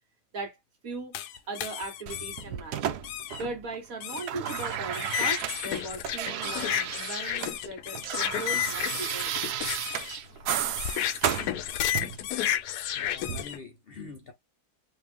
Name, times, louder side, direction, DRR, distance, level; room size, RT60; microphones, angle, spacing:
voice 1, 0.8-1.2 1.5-2.9 3.4-9.3, right 3 dB, 60° right, 1.8 m, -38 dB
sound 1, 1.1-2.4 3.0-3.4 4.0-13.6, left 11 dB, 80° left, 1.1 m, -32 dB
sound 2, 2.1-3.8 4.0-7.6 7.8-12.3 13.2-13.4, right 9 dB, 85° right, 1.2 m, -33 dB
voice 2, 12.9-14.3, left 4 dB, 50° left, 0.8 m, -44 dB
3.5 x 2.6 x 3.4 m
omnidirectional pair, 1.7 m